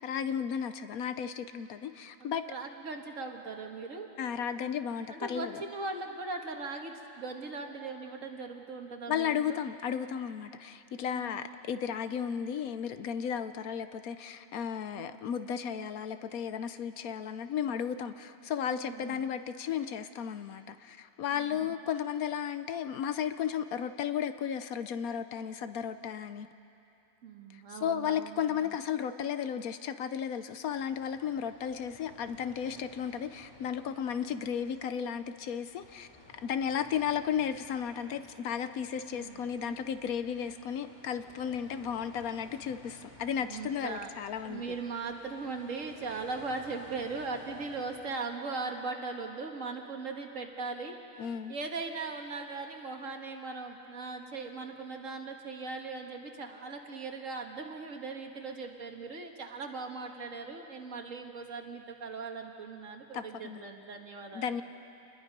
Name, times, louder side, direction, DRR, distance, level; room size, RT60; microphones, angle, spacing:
voice 1, 0.0-2.4 4.2-5.6 9.1-26.5 27.5-36.1 36.4-44.6 51.2-51.5 63.1-63.6 64.3-64.6, left 8 dB, 70° left, 11 dB, 1.1 m, -34 dB
voice 2, 2.2-4.1 5.1-9.6 11.1-11.3 15.0-15.1 18.7-19.2 21.3-21.8 27.2-28.7 39.0-39.4 43.4-44.1 44.4-51.0 51.5-64.5, right 4 dB, 55° right, 3 dB, 1.8 m, -39 dB
sound 1, 30.7-48.1, left 1 dB, 30° left, 2.4 m, -55 dB
28.0 x 21.0 x 5.3 m, 2.8 s
omnidirectional pair, 1.6 m